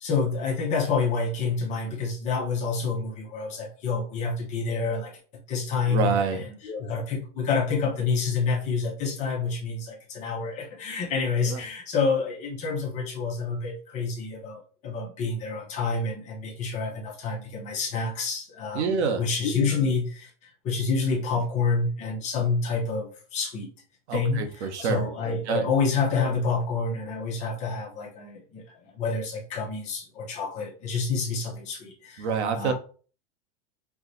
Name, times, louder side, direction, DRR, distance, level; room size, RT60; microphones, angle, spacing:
voice 1, 0.0-5.2 5.5-23.7 24.1-28.6 28.9-32.3 32.5-32.7, left 4 dB, 20° left, 0 dB, 0.6 m, -28 dB
voice 2, 5.9-6.4 11.5-11.6 18.7-19.2 24.1-25.0 25.5-25.6 32.2-32.7, right 6 dB, 70° right, 6 dB, 0.9 m, -26 dB
4.6 x 2.1 x 3.9 m, 0.39 s
supercardioid pair, 170°, 35 cm